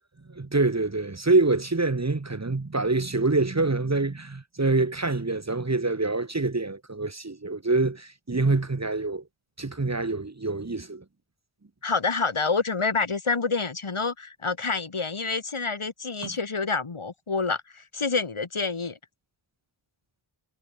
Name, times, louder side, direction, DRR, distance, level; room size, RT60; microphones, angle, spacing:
voice 1, 0.3-9.2 9.6-11.0 16.2-16.4, right 3 dB, 30° right, 1.5 m, -25 dB
voice 2, 11.8-19.0, left 4 dB, 75° left, 3.3 m, -28 dB
wide cardioid pair, 50°, 50 cm